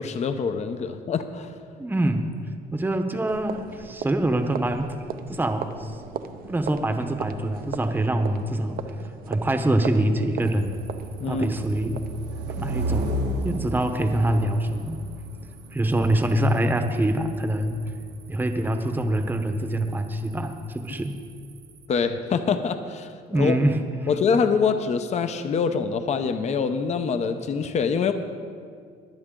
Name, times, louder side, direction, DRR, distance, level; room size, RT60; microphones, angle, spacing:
voice 1, 0.0-1.5 11.2-11.5 21.9-23.6 24.1-28.1, left 5 dB, 40° left, 9 dB, 0.7 m, -25 dB
voice 2, 1.8-2.3 2.7-4.9 5.3-5.9 6.5-8.8 9.3-10.8 11.3-12.0 12.6-13.1 13.4-15.0 15.7-17.8 18.3-21.1 23.3-23.8 24.0-24.2, right 1 dB, 10° right, 6 dB, 0.9 m, -24 dB
sound 1, 3.3-13.8, right 8 dB, 60° right, 0.7 m, -39 dB
sound 2, 10.4-21.8, right 1 dB, 85° right, 1.4 m, -35 dB
22.5 x 7.8 x 3.8 m, 2.1 s
cardioid pair, 110°, 17 cm